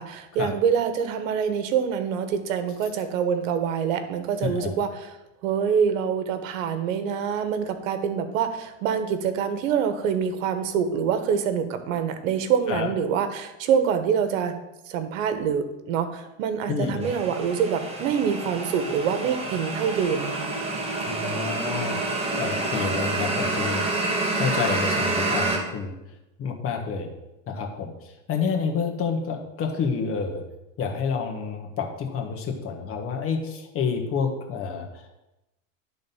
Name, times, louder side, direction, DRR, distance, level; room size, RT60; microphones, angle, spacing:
voice 1, 0.0-5.1 5.4-14.6 14.9-20.5, right 7 dB, 75° right, 9 dB, 1.2 m, -25 dB
voice 2, 4.4-4.7 12.7-12.9 16.7-17.1 21.0-22.0 22.4-23.8 24.4-25.9 26.4-27.1 27.5-30.4 30.8-35.2, left 5 dB, 35° left, 2 dB, 1.4 m, -29 dB
sound 1, 17.0-25.6, right 2 dB, 15° right, 1.4 m, -28 dB
11.0 x 3.9 x 5.6 m, 0.96 s
supercardioid pair, 130°, 39 cm